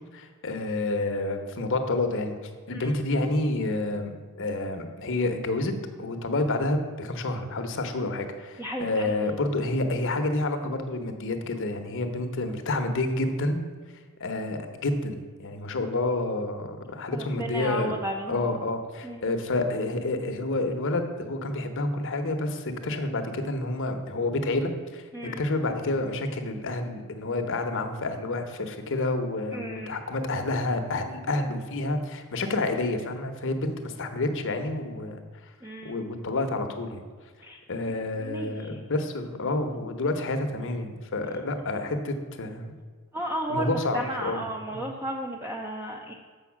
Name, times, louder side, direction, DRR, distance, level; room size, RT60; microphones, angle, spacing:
voice 1, 0.1-2.4 2.7-4.1 4.4-5.7 6.0-13.6 14.2-17.9 18.3-25.0 25.4-35.5 35.8-37.0 37.7-42.7 43.5-44.9, left 2 dB, 60° left, 6 dB, 0.9 m, -29 dB
voice 2, 8.6-9.3 17.1-18.5 19.0-19.2 25.1-25.4 29.5-30.0 35.6-36.0 37.4-37.6 37.9-38.8 43.1-46.1, right 1 dB, 10° right, 0 dB, 0.6 m, -34 dB
7.1 x 5.4 x 7.2 m, 1.6 s
head